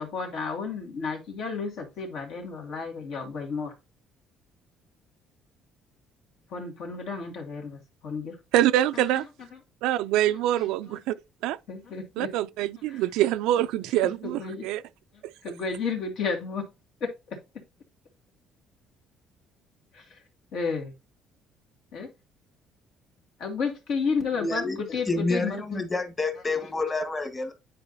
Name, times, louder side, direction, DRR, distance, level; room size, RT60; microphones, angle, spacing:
voice 1, 0.0-3.7 6.5-8.4 8.9-9.0 10.6-11.0 11.7-12.3 12.9-13.0 14.0-14.7 15.4-16.7 17.0-17.4 19.9-20.2 20.5-20.9 21.9-22.1 23.4-25.9, left 5 dB, 70° left, 2.3 m, -32 dB
voice 2, 8.5-9.2 9.8-11.2 11.4-11.6 12.2-14.8 15.2-15.3, right 13 dB, 85° right, 0.4 m, -25 dB
voice 3, 24.3-27.5, left 3 dB, 20° left, 1.5 m, -29 dB
10.0 x 4.5 x 2.7 m
cardioid pair, 120°, 0 cm